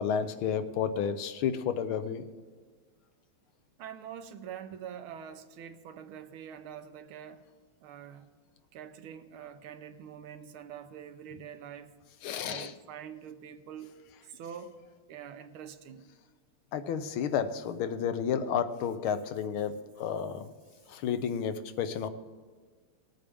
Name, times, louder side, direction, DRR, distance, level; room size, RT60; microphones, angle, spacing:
voice 1, 0.0-2.2 12.2-12.7 16.7-20.5 20.9-22.1, left 7 dB, 75° left, 1.5 m, -31 dB
voice 2, 3.8-7.4 7.8-8.3 8.7-11.9 12.4-14.8 15.1-16.1, right 8 dB, 75° right, 1.5 m, -45 dB
19.0 x 8.6 x 3.4 m
omnidirectional pair, 2.4 m